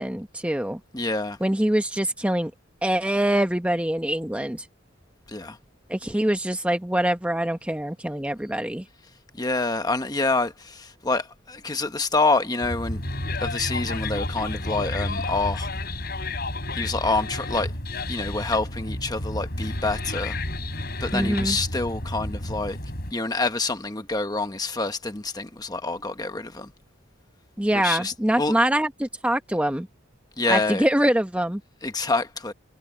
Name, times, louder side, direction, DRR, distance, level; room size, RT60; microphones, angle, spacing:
voice 1, 0.0-0.8 1.4-2.5 2.8-4.7 5.9-8.8 21.1-21.6 27.6-29.9 30.5-31.6, right 1 dB, 5° right, 0.9 m, -24 dB
voice 2, 0.9-1.4 5.3-5.6 9.4-13.0 13.4-15.7 16.7-17.7 18.1-20.4 21.0-22.8 23.1-26.7 27.7-28.6 30.4-30.9 31.8-32.5, left 3 dB, 20° left, 1.1 m, -27 dB
sound 1, 12.6-23.1, left 2 dB, 50° left, 7.4 m, -31 dB
head